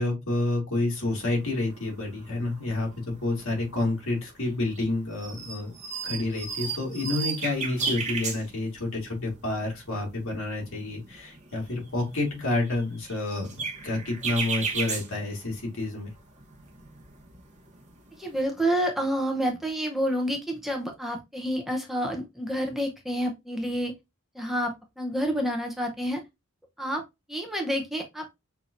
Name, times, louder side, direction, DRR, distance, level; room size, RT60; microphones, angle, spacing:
voice 1, 0.0-5.8 6.0-16.1, left 2 dB, 70° left, 0 dB, 1.8 m, -29 dB
sound 1, 1.2-1.4 1.7-2.3 2.6-3.9 4.4-4.9 5.1-8.8 9.2-9.3 9.6-10.1 10.5-15.9 16.2-18.4, right 5 dB, 35° right, 0.9 m, -35 dB
voice 2, 18.2-23.9 24.3-26.2 26.8-27.0 27.3-28.3, equal, ahead, 2 dB, 0.6 m, -29 dB
5.7 x 2.8 x 2.5 m, 0.21 s
head